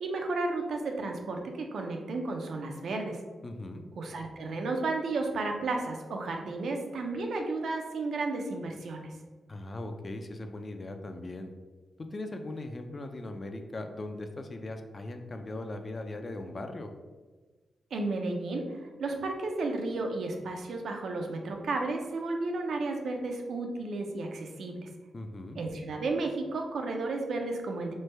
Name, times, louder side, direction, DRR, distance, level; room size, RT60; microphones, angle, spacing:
voice 1, 0.0-3.2 4.0-9.1 17.9-24.9 25.6-27.9, right 3 dB, 80° right, 3 dB, 0.4 m, -33 dB
voice 2, 3.4-3.9 9.5-11.5 12.0-16.9 25.1-25.7, left 2 dB, 40° left, 6 dB, 0.4 m, -39 dB
3.2 x 2.1 x 3.2 m, 1.3 s
cardioid pair, 70°, 0 cm